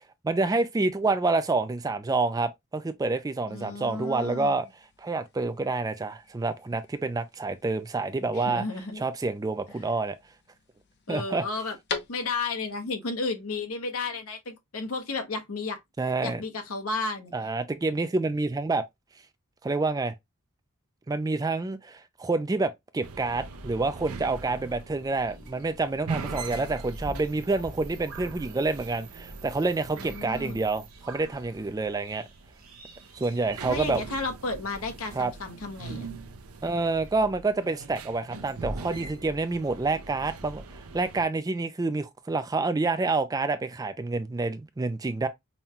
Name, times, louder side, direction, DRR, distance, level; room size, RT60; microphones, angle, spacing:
voice 1, 0.2-4.7 5.0-8.6 9.0-10.2 11.1-11.4 16.0-16.4 17.3-18.9 19.6-20.1 21.1-32.2 33.2-34.0 35.1-35.3 36.6-45.3, right 3 dB, 15° right, 0.3 m, -28 dB
voice 2, 3.5-4.6 8.3-9.0 11.1-11.8 12.1-15.8 16.2-17.3 29.9-30.6 33.7-36.1, left 3 dB, 75° left, 1.0 m, -33 dB
sound 1, 4.2-12.7, left 5 dB, 50° left, 0.7 m, -44 dB
sound 2, 23.0-41.2, right 3 dB, 85° right, 0.6 m, -42 dB
sound 3, 25.2-33.8, right 2 dB, 65° right, 1.5 m, -48 dB
5.5 x 2.2 x 2.8 m
head